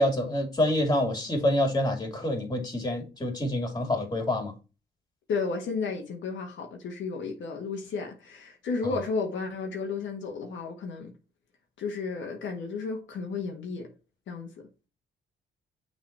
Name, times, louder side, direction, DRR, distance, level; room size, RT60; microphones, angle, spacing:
voice 1, 0.0-4.6, left 1 dB, 20° left, 2.8 m, -27 dB
voice 2, 5.3-11.1 11.8-13.9 14.3-14.7, left 4 dB, 70° left, 1.5 m, -33 dB
6.3 x 4.1 x 4.3 m
cardioid pair, 90°, 20 cm